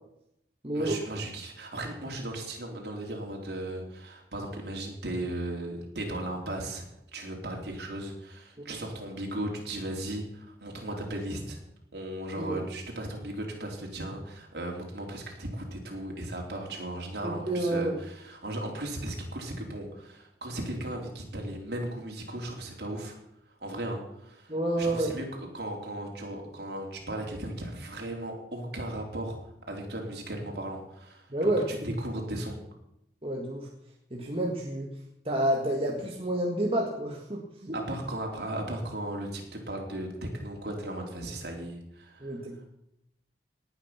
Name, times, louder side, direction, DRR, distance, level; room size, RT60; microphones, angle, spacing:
voice 1, 0.7-6.8 7.1-11.6 11.9-23.2 23.6-25.2 25.5-29.4 29.7-32.6 37.7-42.4, right 1 dB, 70° right, 0 dB, 3.7 m, -36 dB
voice 2, 17.2-17.9 24.5-25.1 31.3-31.7 33.2-33.7 34.1-34.9 35.3-37.8 42.2-42.6, right 1 dB, 30° right, -1 dB, 1.8 m, -29 dB
19.0 x 9.2 x 5.9 m, 0.79 s
head